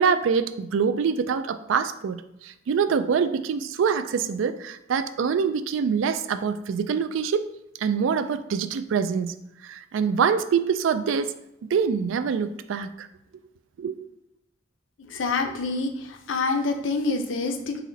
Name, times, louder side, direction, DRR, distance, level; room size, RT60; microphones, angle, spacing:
voice 1, 0.0-7.5 7.8-9.4 9.6-11.3 11.7-13.1 13.8-14.0, right 6 dB, 75° right, 11 dB, 0.3 m, -25 dB
voice 2, 15.1-17.8, left 3 dB, 70° left, 5 dB, 0.6 m, -27 dB
4.1 x 3.0 x 3.9 m, 0.84 s
head